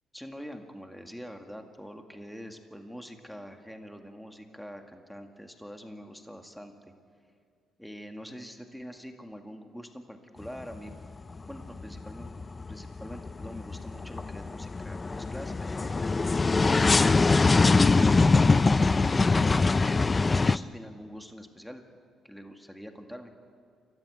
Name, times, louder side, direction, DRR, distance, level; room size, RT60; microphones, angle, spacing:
voice 1, 0.1-6.7 7.8-10.9 11.4-16.5 17.0-19.5 20.2-21.8 22.2-23.3, equal, ahead, 4 dB, 2.0 m, -44 dB
sound 1, 10.4-11.0 11.4-20.6, left 3 dB, 25° left, 0.5 m, -23 dB
28.5 x 14.0 x 8.3 m, 2.2 s
cardioid pair, 90°, 0 cm